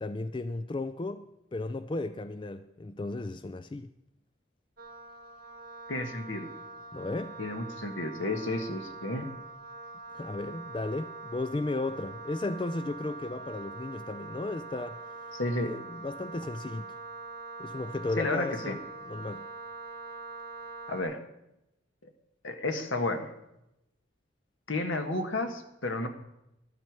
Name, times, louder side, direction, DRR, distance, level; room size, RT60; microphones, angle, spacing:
voice 1, 0.0-3.9 6.9-7.4 10.1-15.3 15.6-16.9 17.6-18.8 19.1-19.5, left 2 dB, 25° left, 0.3 m, -35 dB
Wind instrument woodwind instrument, 4.8-21.0, right 3 dB, 45° right, 1.6 m, -44 dB
voice 2, 5.9-6.5 7.4-9.3 15.3-15.7 18.2-18.8 20.9-21.2 22.4-23.3 24.7-26.1, left 2 dB, 75° left, 1.5 m, -32 dB
12.0 x 12.0 x 4.7 m
head